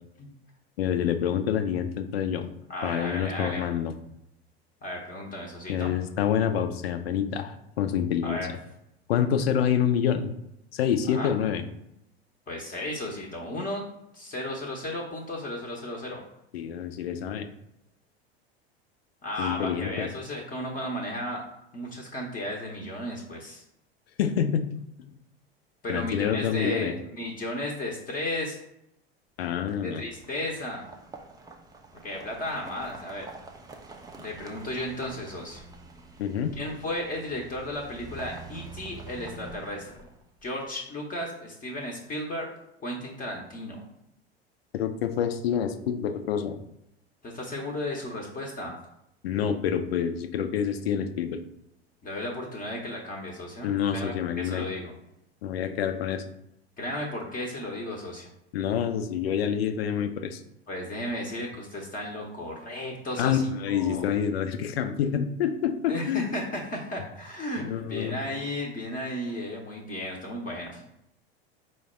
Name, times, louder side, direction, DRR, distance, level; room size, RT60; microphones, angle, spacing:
voice 1, 0.8-2.5 2.8-3.9 5.7-8.4 9.1-10.3 10.7-11.6 16.5-17.5 19.4-20.1 24.2-24.7 25.9-26.9 29.4-30.0 36.2-36.5 44.7-46.6 49.2-51.4 53.6-54.7 55.4-56.2 58.5-60.4 63.2-66.3 67.6-68.2, left 8 dB, 70° left, 8 dB, 0.6 m, -27 dB
voice 2, 2.7-3.6 4.8-5.9 8.2-8.5 11.1-11.3 12.5-13.8 14.1-16.2 19.2-21.4 21.7-23.6 25.8-28.6 29.8-30.8 32.0-33.3 34.2-35.6 36.6-39.9 40.4-42.5 42.8-43.9 47.2-48.7 52.0-54.9 56.8-58.3 60.7-64.1 65.9-70.8, left 1 dB, 25° left, -1 dB, 0.8 m, -34 dB
sound 1, 29.6-40.4, right 3 dB, 10° right, 0.5 m, -46 dB
4.7 x 2.1 x 4.2 m, 0.81 s
figure-of-eight pair, 80°, 32 cm